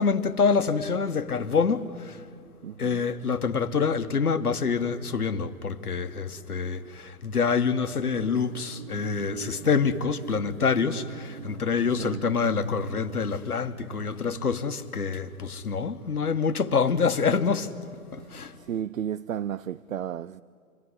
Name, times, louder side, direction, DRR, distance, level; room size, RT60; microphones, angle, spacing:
voice 1, 0.0-2.2 2.8-17.7 18.1-18.6, left 5 dB, 90° left, 1.7 m, -26 dB
voice 2, 2.6-3.0 12.0-12.2 18.2-18.3 18.6-20.4, right 9 dB, 65° right, 0.6 m, -33 dB
sound 1, 7.9-15.7 16.2-16.3, right 10 dB, 45° right, 1.1 m, -45 dB
27.5 x 21.5 x 10.0 m
hypercardioid pair, 150°, 44 cm